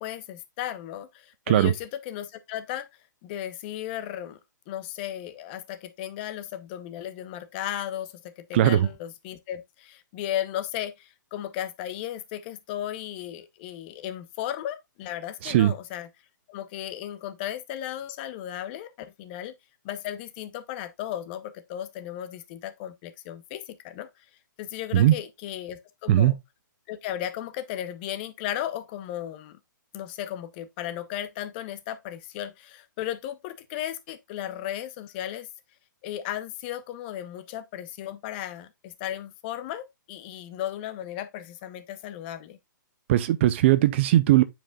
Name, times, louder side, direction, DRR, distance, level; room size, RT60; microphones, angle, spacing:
voice 1, 0.0-2.9 3.2-4.4 4.7-16.1 16.5-19.5 19.8-24.1 24.6-26.4 26.9-29.6 29.9-35.5 36.0-42.6, left 11 dB, 30° left, 0.7 m, -35 dB
voice 2, 8.5-8.9 15.4-15.7 24.9-25.1 26.1-26.3 43.1-44.4, right 13 dB, 35° right, 0.4 m, -19 dB
8.8 x 5.1 x 2.3 m
hypercardioid pair, 155°, 11 cm